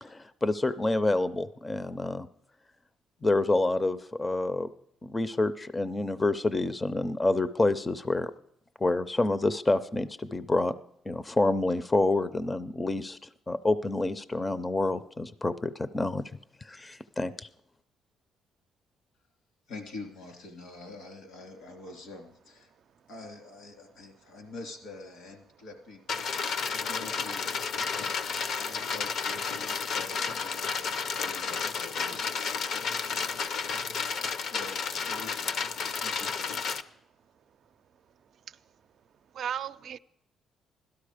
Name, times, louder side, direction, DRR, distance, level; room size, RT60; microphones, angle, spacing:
voice 1, 0.0-2.3 3.2-4.7 5.0-8.3 8.8-10.8 11.1-13.2 13.5-16.2 16.6-17.5, left 2 dB, 20° left, 0.5 m, -28 dB
voice 2, 19.7-22.7 23.1-26.2 26.7-33.9 34.5-36.6, left 2 dB, 85° left, 2.9 m, -46 dB
sound 1, 26.1-36.8, left 5 dB, 70° left, 0.7 m, -32 dB
voice 3, 39.4-40.0, right 9 dB, 65° right, 0.4 m, -36 dB
17.0 x 12.5 x 5.0 m
cardioid pair, 90°, 0 cm